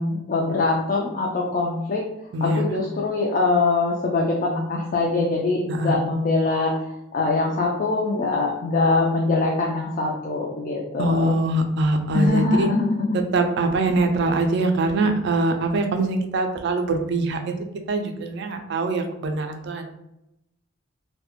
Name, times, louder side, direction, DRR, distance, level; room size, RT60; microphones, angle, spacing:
voice 1, 0.0-2.0 2.4-6.9 7.1-11.3 12.1-13.2, left 3 dB, 40° left, -1 dB, 0.3 m, -23 dB
voice 2, 2.3-2.6 5.7-6.0 11.0-12.7 13.1-17.5 17.9-19.9, right 2 dB, 55° right, 5 dB, 0.4 m, -23 dB
2.3 x 2.1 x 2.9 m, 0.84 s
head